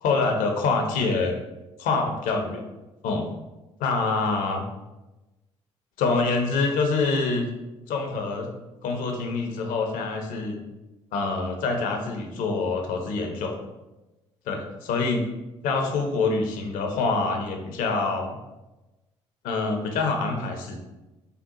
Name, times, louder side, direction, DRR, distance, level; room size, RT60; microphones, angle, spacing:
voice 1, 0.0-1.3 1.8-2.6 3.0-3.2 3.8-4.6 6.0-7.5 7.9-8.5 8.8-10.6 11.1-13.5 14.5-14.6 14.9-15.2 15.6-18.4 19.4-20.8, left 4 dB, 60° left, 3 dB, 0.7 m, -25 dB
6.5 x 2.4 x 2.7 m, 1.0 s
figure-of-eight pair, 50°, 15 cm